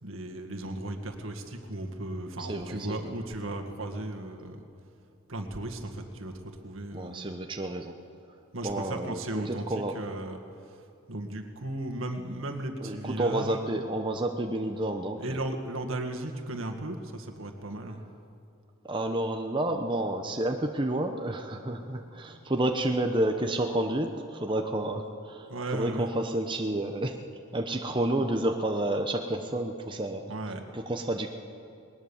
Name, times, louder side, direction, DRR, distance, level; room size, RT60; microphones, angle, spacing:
voice 1, 0.0-4.6 5.3-6.3 6.6-7.4 8.5-10.4 11.1-13.5 15.2-18.0 21.7-22.5 25.5-26.1 30.3-30.6, right 1 dB, 75° right, 4 dB, 1.9 m, -36 dB
voice 2, 2.4-3.1 6.9-7.9 8.6-10.0 12.8-15.4 18.8-27.2 27.5-30.3 30.7-31.4, right 1 dB, 25° right, 3 dB, 0.9 m, -30 dB
20.0 x 20.0 x 7.2 m, 2.6 s
head